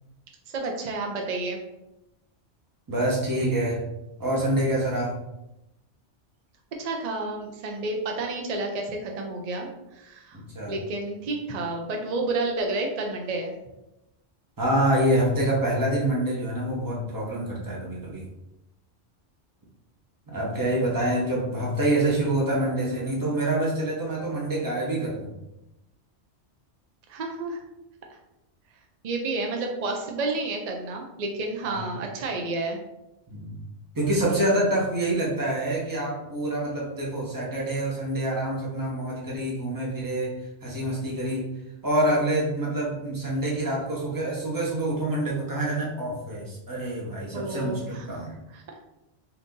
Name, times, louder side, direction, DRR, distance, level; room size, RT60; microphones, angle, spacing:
voice 1, 0.5-1.6 6.8-10.4 10.7-13.5 27.1-27.6 29.0-32.8 47.3-48.2 48.5-48.6, right 2 dB, 60° right, 2 dB, 0.4 m, -30 dB
voice 2, 2.9-3.8 4.2-5.2 10.3-10.7 14.6-18.3 20.3-25.3 31.6-31.8 33.3-33.6 33.9-40.3 40.6-41.5 41.8-48.4, right 1 dB, 20° right, -4 dB, 0.8 m, -26 dB
2.8 x 2.5 x 3.6 m, 0.91 s
omnidirectional pair, 1.2 m